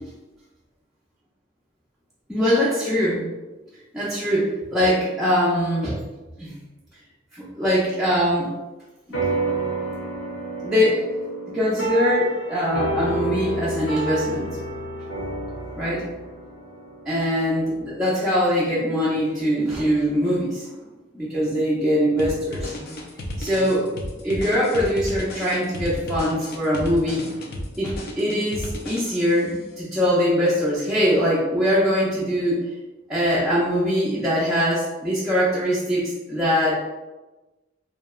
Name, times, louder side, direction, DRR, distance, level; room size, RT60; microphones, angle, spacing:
voice 1, 2.3-3.2 3.9-6.0 6.4-6.5 7.3-8.5 10.6-11.0 11.5-14.6 15.8-16.0 17.1-20.7 21.1-22.7 23.4-23.8 24.2-27.2 27.8-32.6 33.1-36.7, equal, 5° right, -10 dB, 0.5 m, -22 dB
sound 1, 9.1-17.8, right 2 dB, 80° left, 0.9 m, -29 dB
sound 2, 22.2-29.5, left 1 dB, 55° left, 0.4 m, -33 dB
2.8 x 2.2 x 2.3 m, 1.1 s
head